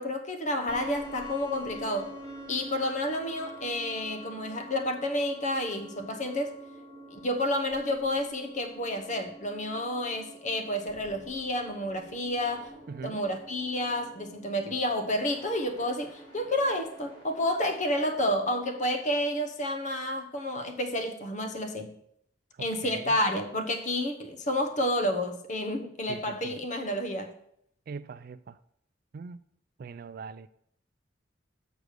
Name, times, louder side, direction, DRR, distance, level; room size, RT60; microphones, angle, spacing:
voice 1, 0.0-2.1 2.5-6.5 7.1-12.7 13.0-21.9 22.6-27.3, left 1 dB, 40° left, 1.0 m, -30 dB
sound 1, 0.7-19.0, equal, 25° left, 2.7 m, -47 dB
voice 2, 12.9-13.2 22.5-23.2 26.1-26.6 27.9-28.6 29.1-29.4 29.8-30.5, right 5 dB, 50° right, 0.3 m, -42 dB
6.7 x 6.1 x 6.5 m
head